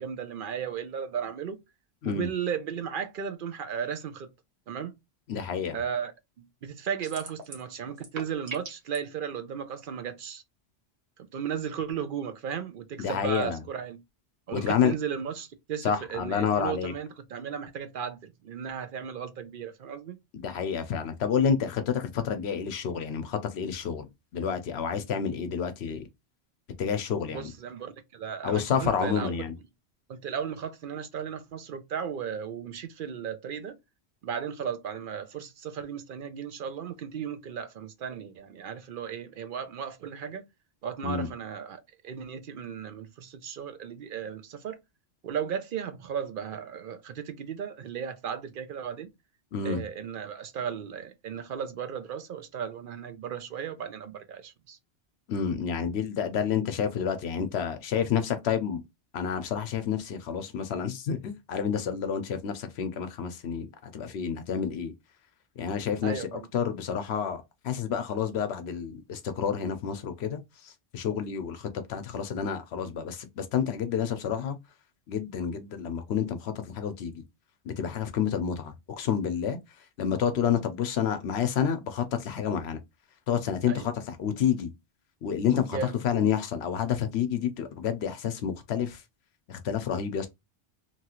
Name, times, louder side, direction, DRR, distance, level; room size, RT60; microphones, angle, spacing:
voice 1, 0.0-1.6 2.0-4.3 4.7-4.9 5.7-6.1 6.6-10.4 11.3-14.0 14.5-20.2 27.3-29.4 30.1-33.7 34.2-40.4 40.8-44.8 45.2-49.1 49.6-54.8 66.0-66.5 83.7-83.9 85.7-86.0, right 7 dB, 60° right, 0.7 m, -35 dB
voice 2, 5.3-5.8 13.0-13.6 14.5-14.9 15.8-16.9 20.3-26.0 26.8-27.5 28.4-29.5 41.0-41.3 49.5-49.8 55.3-58.8 59.1-63.7 63.9-64.9 65.6-74.6 75.1-77.2 77.7-79.6 80.0-82.8 83.3-84.7 85.2-85.8 86.0-89.0 89.5-90.3, left 7 dB, 75° left, 0.8 m, -29 dB
sound 1, 7.0-7.7 8.0-9.0, right 3 dB, 75° right, 1.1 m, -39 dB
3.0 x 2.4 x 2.8 m
omnidirectional pair, 1.1 m